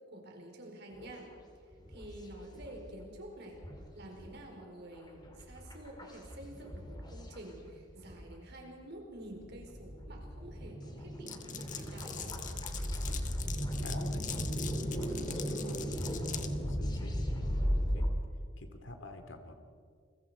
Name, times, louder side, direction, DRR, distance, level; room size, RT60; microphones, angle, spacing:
voice 1, 0.1-1.3 1.9-3.6 3.9-12.4, right 1 dB, 55° right, 1 dB, 4.5 m, -49 dB
sound 1, 0.9-1.3 1.7-2.9 3.2-3.3 3.5-8.3 8.8-8.9 9.3-18.1, equal, 20° left, 2.9 m, -37 dB
sound 2, 11.2-13.6 13.9-16.5, equal, 20° right, 3.9 m, -51 dB
Glass, 11.3-16.5, left 10 dB, 40° left, 1.4 m, -43 dB
voice 2, 13.6-18.1 18.6-19.5, left 1 dB, 65° left, 7 dB, 2.4 m, -48 dB
29.5 x 22.5 x 5.0 m, 2.2 s
head